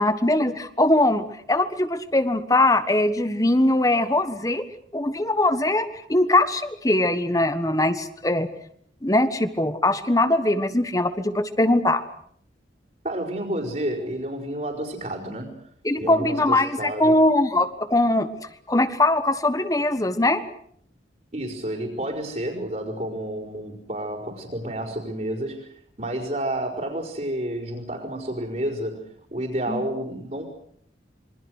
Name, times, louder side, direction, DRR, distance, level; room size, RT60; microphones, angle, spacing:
voice 1, 0.0-4.6 4.9-8.5 9.0-12.0 15.8-18.3 18.7-20.4 29.7-29.8, left 1 dB, 20° left, 11 dB, 1.4 m, -21 dB
voice 2, 13.0-15.6 16.0-17.2 21.3-25.7 26.0-29.1 29.3-30.4, right 1 dB, 40° right, -6 dB, 4.8 m, -30 dB
27.0 x 24.0 x 6.4 m, 0.65 s
head